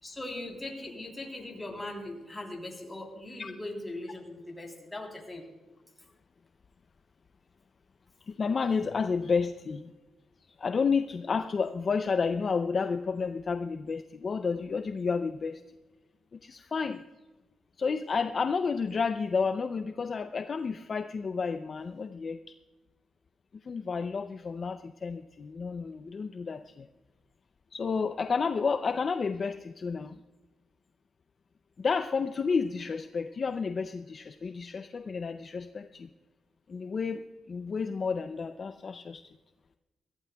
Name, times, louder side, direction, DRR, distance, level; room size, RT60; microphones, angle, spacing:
voice 1, 0.0-5.5, left 1 dB, 15° left, 0 dB, 3.3 m, -40 dB
voice 2, 8.3-9.9 10.6-15.6 16.3-17.0 17.8-22.4 23.6-26.9 27.7-30.2 31.8-36.1 36.7-39.2, left 5 dB, 40° left, 9 dB, 0.4 m, -31 dB
22.0 x 15.0 x 2.3 m, 1.2 s
cardioid pair, 110°, 0 cm